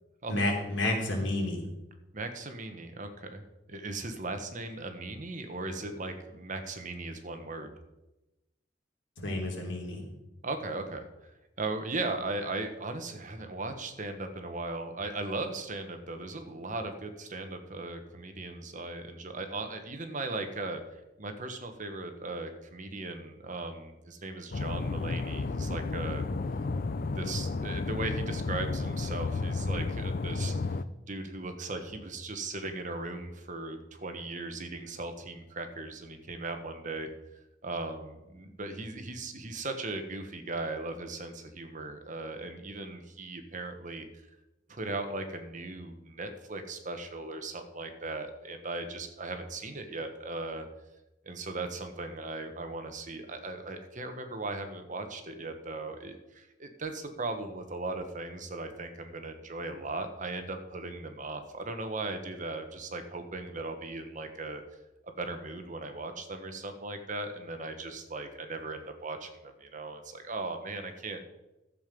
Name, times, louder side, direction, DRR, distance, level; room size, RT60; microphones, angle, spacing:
voice 1, 0.3-1.6 9.2-10.0, left 2 dB, 75° left, 0 dB, 3.2 m, -30 dB
voice 2, 2.1-3.4 3.7-7.7 10.4-11.3 11.6-26.3 27.2-30.8 31.1-37.1 37.6-44.1 44.7-50.7 51.2-64.6 65.0-71.2, right 2 dB, 45° right, 6 dB, 1.3 m, -38 dB
sound 1, 24.5-30.8, left 3 dB, 50° left, 0.5 m, -32 dB
12.5 x 7.8 x 5.3 m, 0.98 s
head